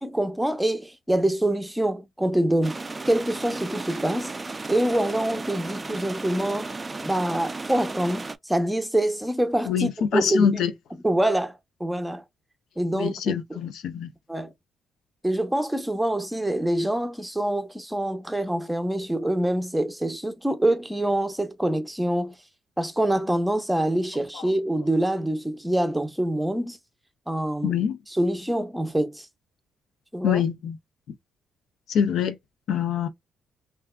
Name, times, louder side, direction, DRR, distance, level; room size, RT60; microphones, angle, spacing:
voice 1, 0.0-2.8 3.1-4.3 4.7-6.7 7.0-10.6 11.0-12.2 12.8-13.1 13.5-13.6 14.3-14.5 15.2-22.4 22.8-26.8 27.3-27.8 28.1-29.3 30.1-30.4, right 1 dB, 5° right, 0.7 m, -25 dB
sound 1, 2.6-8.4, right 3 dB, 25° right, 0.3 m, -34 dB
voice 2, 9.7-10.7 12.9-14.1 27.6-28.0 30.2-30.8 31.9-32.4 32.7-33.1, left 8 dB, 75° left, 0.5 m, -24 dB
3.4 x 2.4 x 2.2 m
cardioid pair, 90°, 0 cm